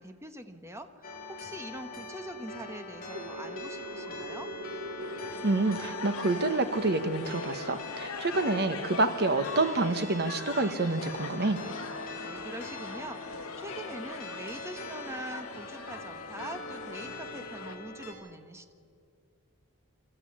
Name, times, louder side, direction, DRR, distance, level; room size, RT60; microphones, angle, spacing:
voice 1, 0.0-4.5 12.2-18.7, right 1 dB, 10° right, 7 dB, 1.2 m, -43 dB
sound 1, 1.0-18.1, left 2 dB, 40° left, 3.6 m, -42 dB
sound 2, 2.9-10.1, equal, 75° right, 1.1 m, -44 dB
sound 3, 5.0-17.8, left 4 dB, 70° left, 1.5 m, -42 dB
voice 2, 5.4-11.6, right 2 dB, 50° right, 9 dB, 1.2 m, -28 dB
26.0 x 13.5 x 8.7 m, 2.2 s
head